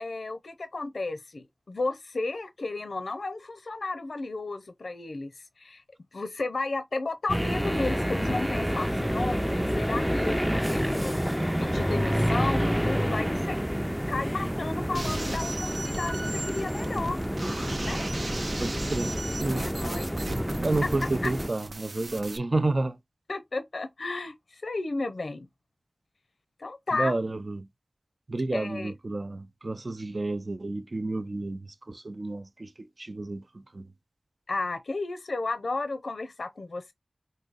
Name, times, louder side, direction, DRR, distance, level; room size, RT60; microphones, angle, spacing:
voice 1, 0.0-5.8 6.1-9.4 9.7-11.2 11.6-13.6 14.1-17.2 17.8-18.1 19.5-20.1 21.2-21.3 23.3-25.5 26.6-27.2 28.5-28.9 34.5-36.9, left 3 dB, 90° left, 0.5 m, -33 dB
sound 1, 7.3-21.5, equal, 5° right, 0.4 m, -28 dB
sound 2, 14.9-22.4, right 2 dB, 75° right, 0.9 m, -37 dB
voice 2, 18.6-19.7 20.6-23.0 26.9-27.7 28.3-33.9, right 2 dB, 55° right, 0.5 m, -31 dB
4.7 x 2.7 x 3.9 m
wide cardioid pair, 50°, 0 cm